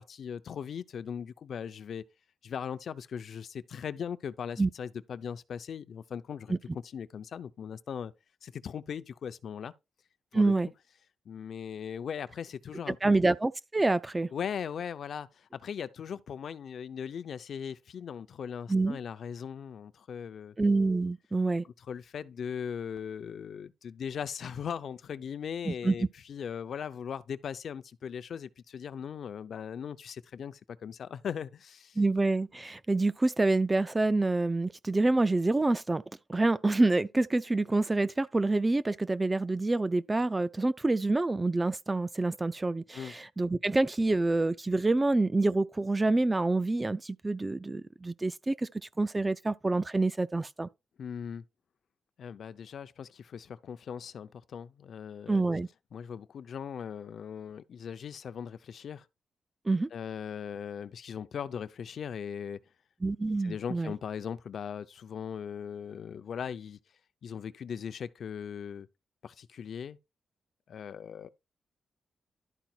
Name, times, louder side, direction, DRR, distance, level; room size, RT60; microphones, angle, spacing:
voice 1, 0.0-2.0 2.4-6.5 6.9-8.1 8.4-9.7 10.3-10.5 11.3-13.1 14.3-20.5 21.9-32.0 42.9-43.1 51.0-51.4 52.2-55.4 55.9-59.1 59.9-62.6 63.4-66.8 67.2-68.9 69.2-70.0 70.7-71.3, left 7 dB, 60° left, 0.6 m, -39 dB
voice 2, 10.3-10.7 12.9-14.3 18.7-19.0 20.6-21.6 25.7-25.9 32.0-36.0 36.3-48.7 49.0-50.7 55.3-55.7 59.7-59.9 63.0-63.9, right 2 dB, 15° right, 0.4 m, -27 dB
12.0 x 4.9 x 4.4 m
wide cardioid pair, 165°, 0 cm